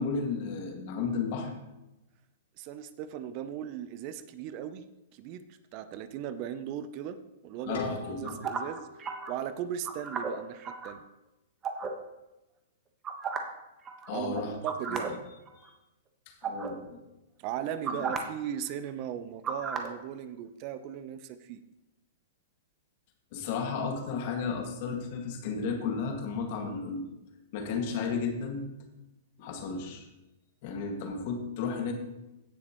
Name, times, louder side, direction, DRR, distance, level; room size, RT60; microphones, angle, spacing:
voice 1, 0.0-1.5 7.7-8.4 14.1-14.6 14.9-15.2 15.6-15.7 16.3-17.0 23.3-27.1 27.5-28.7 29.4-30.1 30.6-31.9, left 5 dB, 50° left, 3 dB, 2.0 m, -33 dB
voice 2, 2.6-4.8 5.1-5.5 5.7-7.8 8.1-8.9 9.3-11.0 14.1-15.1 17.4-21.6, right 10 dB, 45° right, 12 dB, 0.6 m, -37 dB
sound 1, 7.7-10.6, left 3 dB, 75° left, 2.3 m, -45 dB
sound 2, 8.2-9.3 9.8-10.9 11.6-11.9 13.0-13.6 13.8-14.1 14.7-15.1 15.5-15.7 16.4-16.7 17.8-18.2 19.4-19.9, right 6 dB, 25° right, 1.3 m, -34 dB
16.5 x 6.7 x 3.1 m, 0.95 s
hypercardioid pair, 125°, 0 cm